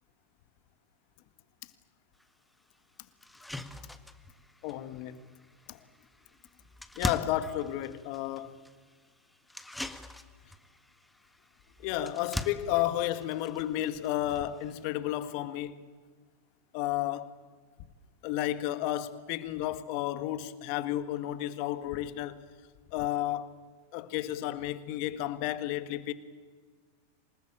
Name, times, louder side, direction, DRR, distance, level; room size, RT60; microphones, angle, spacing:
sound 1, 2.2-2.3 2.7-2.8 3.2-14.9, left 1 dB, 5° left, 1.7 m, -42 dB
voice 1, 4.6-5.2 5.7-5.8 6.9-8.6 11.8-15.8 16.7-17.3 18.2-22.4 22.9-23.5 23.9-26.1, left 13 dB, 55° left, 1.7 m, -32 dB
27.0 x 19.5 x 9.0 m
hypercardioid pair, 90°, 0 cm